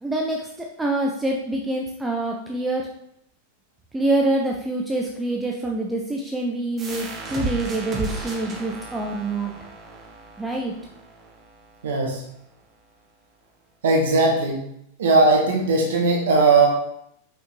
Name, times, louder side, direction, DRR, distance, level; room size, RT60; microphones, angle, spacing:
voice 1, 0.0-2.9 3.9-9.5 10.4-10.7, right 2 dB, 10° right, 0 dB, 0.7 m, -26 dB
sound 1, 6.8-12.2, right 3 dB, 25° right, 1.4 m, -34 dB
voice 2, 11.8-12.2 13.8-14.6 15.0-16.7, right 3 dB, 60° right, 0 dB, 1.3 m, -18 dB
6.2 x 5.2 x 3.3 m, 0.75 s
figure-of-eight pair, 90°, 0 cm